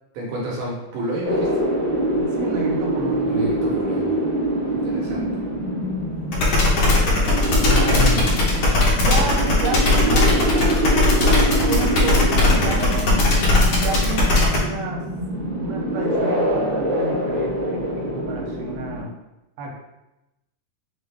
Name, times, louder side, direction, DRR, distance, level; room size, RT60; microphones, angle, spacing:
voice 1, 0.1-1.7 3.3-4.1 4.7-5.3 7.4-8.3, right 1 dB, 70° right, -4 dB, 1.8 m, -30 dB
sound 1, 1.2-19.0, right 1 dB, 45° right, 0.9 m, -25 dB
voice 2, 2.2-3.3 7.5-8.0 9.0-13.1 13.7-15.1 15.6-19.1 19.6-19.7, right 3 dB, 85° right, 0 dB, 2.3 m, -31 dB
sound 2, 6.3-14.6, left 2 dB, 80° left, 1.3 m, -18 dB
5.7 x 2.4 x 3.3 m, 0.95 s
omnidirectional pair, 3.8 m